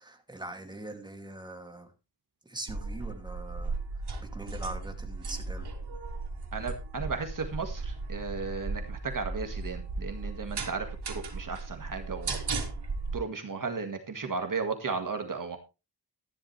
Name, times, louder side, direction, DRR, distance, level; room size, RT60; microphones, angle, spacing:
voice 1, 0.0-1.9 2.4-5.7, right 1 dB, 10° right, 4 dB, 2.6 m, -42 dB
sound 1, 2.7-13.2, right 3 dB, 80° right, 3.1 m, -36 dB
voice 2, 6.5-12.4 13.1-15.6, right 4 dB, 55° right, 6 dB, 1.9 m, -35 dB
13.5 x 11.0 x 3.3 m, 0.28 s
wide cardioid pair, 135°, 39 cm